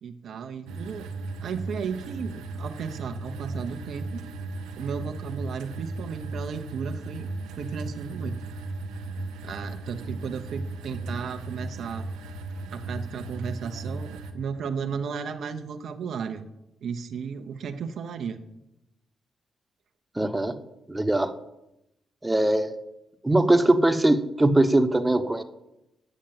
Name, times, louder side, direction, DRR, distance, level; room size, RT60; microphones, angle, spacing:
voice 1, 0.0-1.1 1.4-4.2 4.8-7.3 7.6-8.4 9.4-12.1 12.7-16.4 16.8-18.4, right 6 dB, 70° right, 7 dB, 0.7 m, -34 dB
sound 1, 0.7-14.3, right 2 dB, 90° right, 1.0 m, -36 dB
voice 2, 20.1-20.6 20.9-21.3 22.2-22.7 23.2-25.4, right 1 dB, 15° right, 7 dB, 1.0 m, -21 dB
9.0 x 6.5 x 7.3 m, 0.88 s
supercardioid pair, 55°, 0 cm